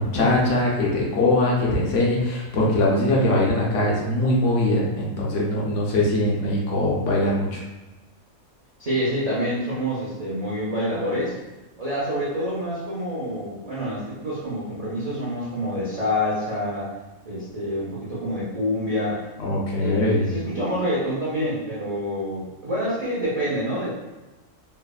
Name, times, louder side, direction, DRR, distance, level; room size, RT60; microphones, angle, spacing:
voice 1, 0.0-7.6 19.4-20.3, left 1 dB, 70° left, -3 dB, 0.8 m, -22 dB
voice 2, 8.8-11.4 11.8-16.9 17.3-19.2 19.8-23.9, equal, 70° right, -8 dB, 0.3 m, -27 dB
3.1 x 2.0 x 2.2 m, 1.1 s
omnidirectional pair, 1.5 m